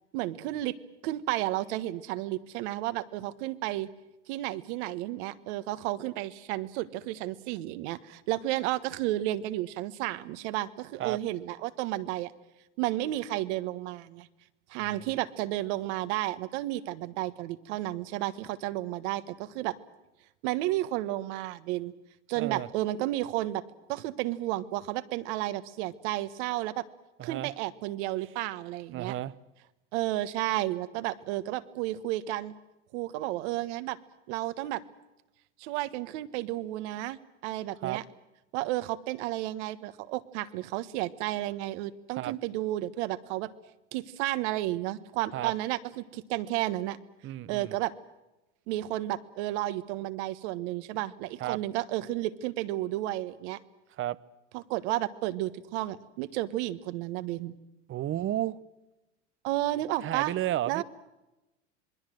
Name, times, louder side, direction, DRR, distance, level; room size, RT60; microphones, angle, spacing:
voice 1, 0.1-0.8 1.0-3.9 4.3-12.3 12.8-14.3 14.7-19.8 20.4-21.9 22.3-23.6 23.9-26.8 27.2-29.1 29.9-32.5 32.9-34.0 34.3-34.8 35.6-38.0 38.5-43.5 43.9-47.0 47.5-47.9 48.7-53.6 54.5-57.5 59.4-60.3 60.7-60.8, right 15 dB, 65° right, 13 dB, 1.4 m, -32 dB
voice 2, 22.4-22.7 27.2-27.5 28.9-29.3 37.8-38.0 42.2-42.4 45.3-45.5 47.2-47.7 51.4-51.6 54.0-54.2 57.9-58.6 60.0-60.8, right 13 dB, 35° right, 19 dB, 0.8 m, -32 dB
27.0 x 21.0 x 7.7 m, 1.0 s
hypercardioid pair, 105°, 36 cm